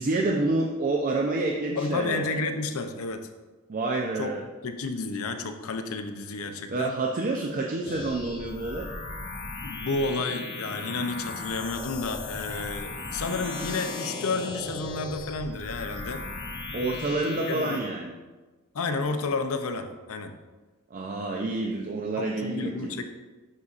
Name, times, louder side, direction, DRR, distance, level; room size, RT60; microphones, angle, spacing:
voice 1, 0.0-2.3 3.7-4.5 6.7-8.9 16.7-18.1 20.9-22.9, right 2 dB, 40° right, 0 dB, 0.4 m, -28 dB
voice 2, 1.8-3.3 4.2-4.3 4.6-6.9 9.6-16.2 17.5-17.8 18.7-20.3 22.2-23.0, left 3 dB, 70° left, 7 dB, 0.5 m, -31 dB
sound 1, 7.8-17.8, left 2 dB, 50° left, 1.0 m, -37 dB
9.7 x 4.1 x 2.4 m, 1.3 s
head